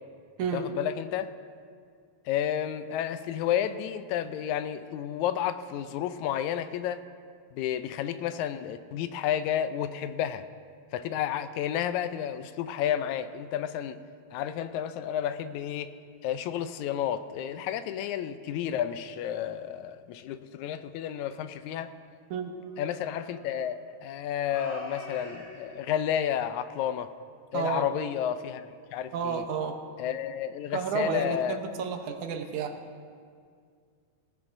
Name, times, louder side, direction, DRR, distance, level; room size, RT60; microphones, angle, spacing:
voice 1, 0.5-1.3 2.3-7.0 7.5-10.4 10.9-14.0 14.3-15.9 16.2-21.9 22.8-27.1 27.5-29.4 30.0-31.6, left 10 dB, 80° left, 11 dB, 1.9 m, -31 dB
sound 1, 21.8-22.0 22.6-23.7 24.4-25.9, left 1 dB, 30° left, 4.3 m, -43 dB
voice 2, 27.5-27.9 29.1-29.8 30.7-32.8, right 6 dB, 80° right, 5 dB, 2.3 m, -31 dB
18.5 x 17.0 x 2.6 m, 2.1 s
omnidirectional pair, 3.4 m